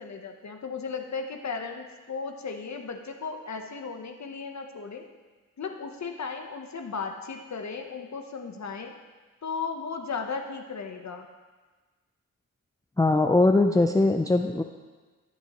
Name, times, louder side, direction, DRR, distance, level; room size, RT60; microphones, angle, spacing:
voice 1, 0.0-5.0 5.6-8.9 9.4-11.3, left 5 dB, 55° left, 4 dB, 0.9 m, -35 dB
voice 2, 13.0-14.6, left 2 dB, 10° left, 4 dB, 0.5 m, -21 dB
14.5 x 7.4 x 3.0 m, 1.3 s
cardioid pair, 70°, 34 cm